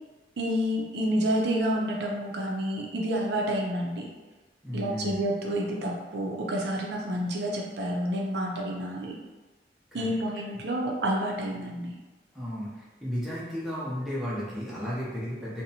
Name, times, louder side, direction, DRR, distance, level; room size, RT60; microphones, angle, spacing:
voice 1, 0.4-4.1 4.7-9.2 9.9-12.0, equal, 75° right, -1 dB, 0.4 m, -29 dB
voice 2, 4.6-5.2 9.9-10.2 12.3-15.6, equal, ahead, -9 dB, 0.6 m, -34 dB
2.7 x 2.0 x 2.7 m, 1.2 s
head